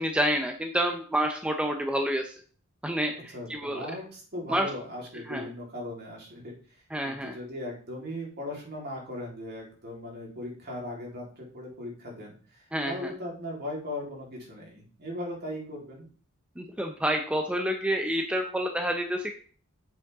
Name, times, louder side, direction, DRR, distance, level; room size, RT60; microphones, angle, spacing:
voice 1, 0.0-2.3 2.8-3.8 4.5-4.7 5.3-5.5 6.9-7.4 12.7-13.1 16.6-19.3, equal, 5° right, 4 dB, 0.7 m, -28 dB
voice 2, 3.3-16.1, left 1 dB, 45° right, -2 dB, 3.7 m, -38 dB
8.8 x 7.6 x 3.6 m, 0.43 s
head